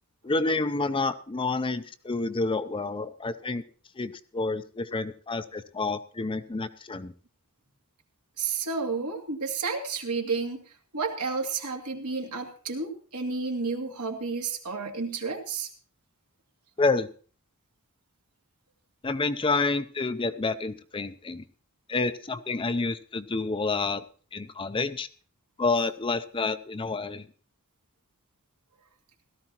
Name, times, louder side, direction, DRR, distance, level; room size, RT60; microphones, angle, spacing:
voice 1, 0.2-3.6 4.0-7.1 16.8-17.1 19.0-21.4 21.9-24.0 24.3-25.1 25.6-27.3, left 3 dB, 25° left, 12 dB, 0.5 m, -29 dB
voice 2, 8.4-10.6 10.9-15.7, right 4 dB, 85° right, 1 dB, 2.3 m, -31 dB
17.0 x 13.5 x 2.9 m, 0.40 s
head